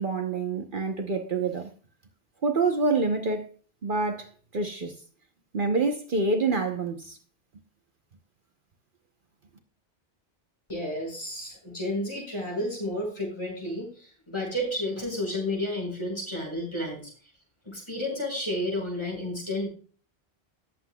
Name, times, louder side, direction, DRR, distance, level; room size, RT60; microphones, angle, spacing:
voice 1, 0.0-1.7 2.4-3.5 3.8-4.9 5.5-7.2, right 3 dB, 55° right, 1.2 m, -27 dB
voice 2, 10.7-17.1 17.6-19.7, left 1 dB, 30° left, 5.7 m, -31 dB
19.5 x 7.9 x 2.3 m
omnidirectional pair, 1.0 m